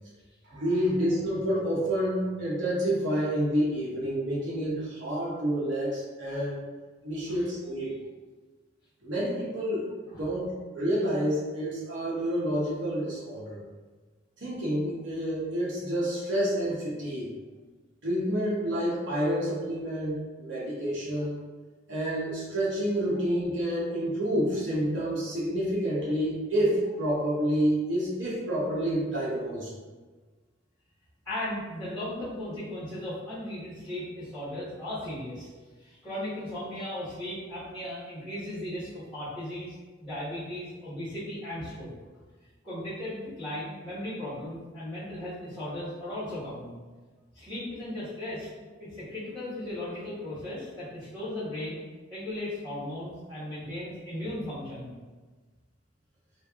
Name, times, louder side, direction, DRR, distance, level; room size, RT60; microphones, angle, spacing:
voice 1, 0.5-6.6 7.0-7.9 9.0-9.9 10.2-10.5 10.7-13.6 14.4-17.3 18.0-21.4 21.9-29.7, equal, 65° right, -6 dB, 0.9 m, -28 dB
voice 2, 31.2-35.5 35.8-39.7 40.0-41.9 42.6-46.7 47.3-48.5 48.8-51.8 52.1-54.9, left 1 dB, 5° left, -13 dB, 1.4 m, -36 dB
3.2 x 2.5 x 3.6 m, 1.3 s
head